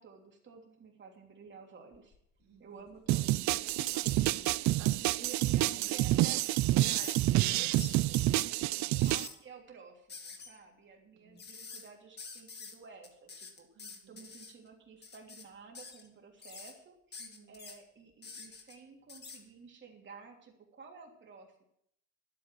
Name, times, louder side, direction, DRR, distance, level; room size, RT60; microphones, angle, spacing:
voice 1, 0.0-2.1 2.6-4.0 4.4-4.7 5.1-6.4 6.7-8.7 9.0-13.7 14.1-21.6, right 5 dB, 40° right, 1 dB, 3.1 m, -52 dB
sound 1, 1.9-2.4 2.9-5.5 6.0-6.1 6.8-7.2 7.8-8.0 8.8-9.3 10.1-10.5 11.4-11.9 12.2-12.7 13.0-14.5 15.0-15.4 15.7-16.1 16.4-16.7 17.1-17.8 18.2-18.7 19.1-19.4, left 5 dB, 35° left, 1.9 m, -48 dB
voice 2, 2.4-2.9 4.7-5.2 5.7-6.3 7.7-8.1 11.1-11.4 13.7-14.3 17.2-17.6, right 6 dB, 85° right, 0 dB, 3.7 m, -55 dB
sound 2, 3.1-9.3, right 16 dB, 70° right, 0.5 m, -28 dB
11.5 x 8.8 x 7.6 m, 0.72 s
cardioid pair, 140°, 30 cm